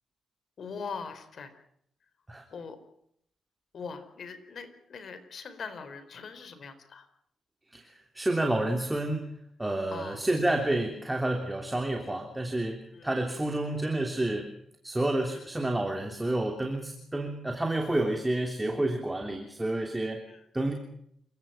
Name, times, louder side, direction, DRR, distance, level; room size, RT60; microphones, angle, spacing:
voice 1, 0.6-1.5 2.5-2.8 3.7-7.1 9.9-10.2 12.9-13.1 15.3-15.4 20.3-20.4, left 5 dB, 55° left, 10 dB, 4.4 m, -41 dB
voice 2, 7.7-9.3 9.6-14.5 14.8-20.2 20.5-20.7, right 1 dB, 10° right, 3 dB, 3.2 m, -29 dB
29.0 x 17.0 x 5.8 m, 0.71 s
cardioid pair, 110°, 0 cm